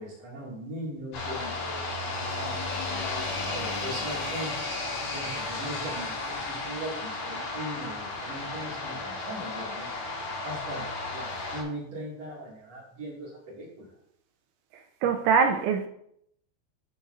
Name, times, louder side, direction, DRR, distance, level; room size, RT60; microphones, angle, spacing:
voice 1, 0.0-13.9, right 1 dB, 40° right, 2.7 m, -40 dB
sound 1, 1.1-11.6, left 3 dB, 55° left, 4.4 m, -33 dB
voice 2, 15.0-15.9, right 6 dB, 85° right, 2.7 m, -23 dB
13.5 x 7.2 x 2.7 m
omnidirectional pair, 5.8 m